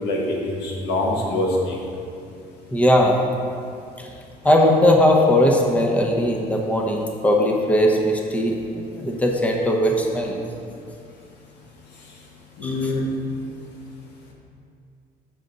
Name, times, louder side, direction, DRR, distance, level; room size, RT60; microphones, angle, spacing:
voice 1, 0.0-1.8 12.6-13.0, left 2 dB, 85° left, -1 dB, 1.4 m, -24 dB
voice 2, 2.7-3.2 4.0-4.1 4.4-10.4 12.6-12.8, left 1 dB, 10° left, 0 dB, 0.8 m, -19 dB
6.7 x 6.5 x 3.9 m, 2.4 s
cardioid pair, 110°, 17 cm